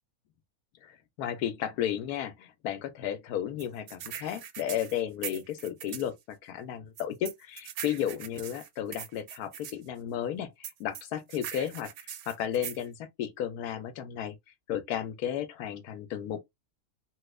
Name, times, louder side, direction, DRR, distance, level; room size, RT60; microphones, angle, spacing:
voice 1, 0.8-11.9 12.3-14.4 14.7-16.4, left 10 dB, 80° left, 1.1 m, -33 dB
sound 1, 3.6-6.1 7.0-9.8 10.6-12.9, right 10 dB, 65° right, 0.8 m, -41 dB
3.1 x 2.3 x 3.0 m
omnidirectional pair, 1.6 m